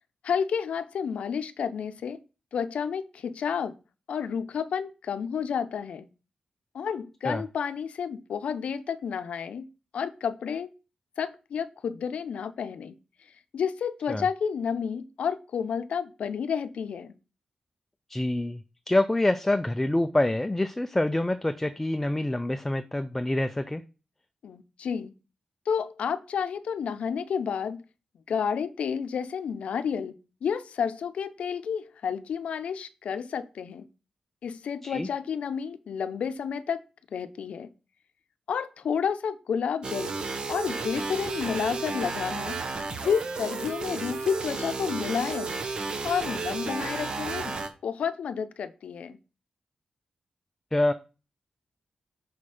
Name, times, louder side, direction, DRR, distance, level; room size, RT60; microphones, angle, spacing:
voice 1, 0.2-2.2 2.5-3.7 4.1-6.1 6.7-9.7 9.9-10.7 11.2-13.0 13.5-17.1 24.4-25.1 25.7-27.8 28.3-30.1 30.4-33.9 34.4-36.8 37.1-37.7 38.5-40.1 40.5-42.5 43.0-45.6 46.0-47.6 47.8-49.2, left 7 dB, 85° left, 0.5 m, -30 dB
voice 2, 18.1-18.6 18.9-23.8 34.8-35.1 50.7-50.9, left 1 dB, 10° left, 0.4 m, -26 dB
sound 1, 39.8-47.7, right 4 dB, 45° right, 0.9 m, -33 dB
5.9 x 4.3 x 4.8 m
wide cardioid pair, 150°, 2 cm